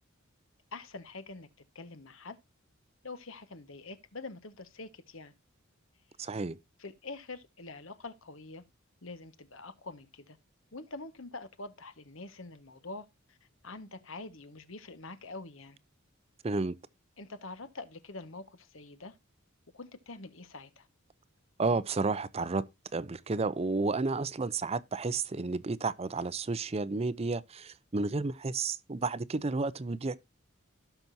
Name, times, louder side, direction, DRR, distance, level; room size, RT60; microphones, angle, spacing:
voice 1, 0.7-1.5 1.7-2.4 3.0-5.3 6.8-8.6 9.0-10.4 10.7-13.4 13.6-15.8 17.2-19.2 19.7-20.9, left 3 dB, 65° left, 1.4 m, -45 dB
voice 2, 6.2-6.6 16.4-16.7 21.6-22.6 22.9-30.2, right 3 dB, 30° right, 0.5 m, -31 dB
17.0 x 6.1 x 2.7 m
head